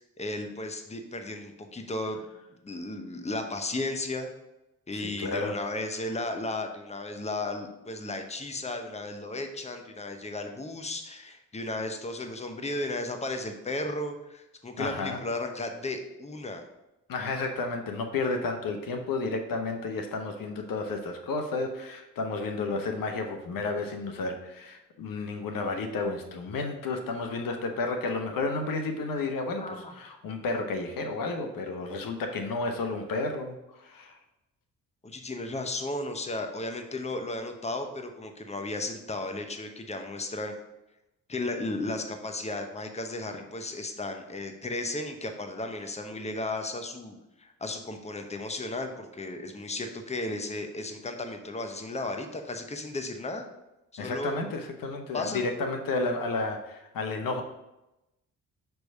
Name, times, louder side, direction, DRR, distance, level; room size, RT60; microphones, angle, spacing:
voice 1, 0.2-2.2 2.6-4.3 4.9-16.6 29.6-29.9 35.0-40.5 41.3-53.5 53.9-54.4 55.1-55.4, left 2 dB, 20° left, 5 dB, 1.0 m, -34 dB
voice 2, 4.9-5.5 14.8-15.2 17.1-34.2 54.0-57.4, left 3 dB, 65° left, 5 dB, 1.0 m, -32 dB
6.1 x 3.4 x 5.4 m, 0.93 s
hypercardioid pair, 45°, 37 cm